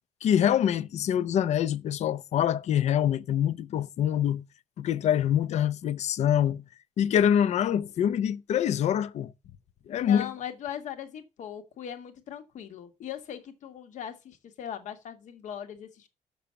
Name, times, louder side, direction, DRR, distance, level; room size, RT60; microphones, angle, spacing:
voice 1, 0.2-4.4 4.8-6.6 7.0-9.3 9.9-10.3, left 9 dB, 70° left, 0.6 m, -25 dB
voice 2, 9.9-16.1, left 9 dB, 90° left, 1.6 m, -39 dB
6.9 x 6.2 x 6.9 m
wide cardioid pair, 175°, 12 cm